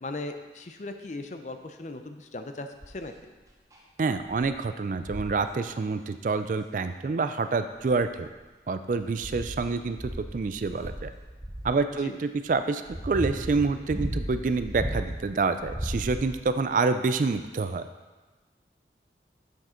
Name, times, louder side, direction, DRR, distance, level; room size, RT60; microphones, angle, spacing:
voice 1, 0.0-3.3 12.0-12.2, left 2 dB, 40° left, 7 dB, 0.5 m, -38 dB
sound 1, 2.8-3.1 3.7-3.8 4.3-4.5 5.0-5.4 6.8-6.9 7.7-8.4 8.9-11.8 12.5-15.3 15.6-16.5 17.4-17.5, equal, 20° right, 0.8 m, -35 dB
voice 2, 4.0-8.3 8.7-10.0 10.3-11.1 11.6-17.9, right 4 dB, 45° right, 10 dB, 0.3 m, -27 dB
7.2 x 6.3 x 4.4 m, 1.2 s
head